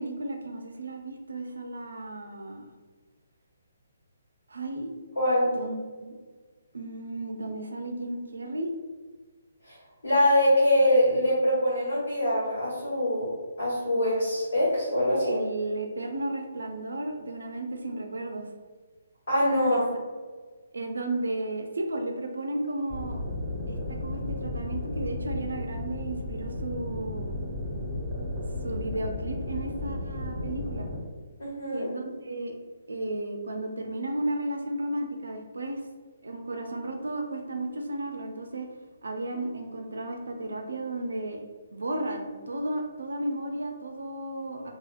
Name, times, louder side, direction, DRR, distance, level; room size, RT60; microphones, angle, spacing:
voice 1, 0.0-2.7 4.5-4.9 5.5-6.2 6.7-8.7 15.2-18.5 19.7-19.8 20.7-23.2 23.7-27.4 28.6-30.9 31.7-32.5 32.9-35.8 36.2-38.7 39.0-41.4 41.7-44.7, right 1 dB, 65° right, 4 dB, 0.4 m, -34 dB
voice 2, 5.1-5.5 9.6-9.8 10.0-13.3 13.6-15.4 19.3-19.9 31.4-31.9, left 1 dB, 55° left, -12 dB, 1.4 m, -23 dB
sound 1, 22.9-31.0, left 2 dB, 10° right, 1.2 m, -34 dB
3.4 x 2.3 x 2.3 m, 1.4 s
figure-of-eight pair, 135°, 0 cm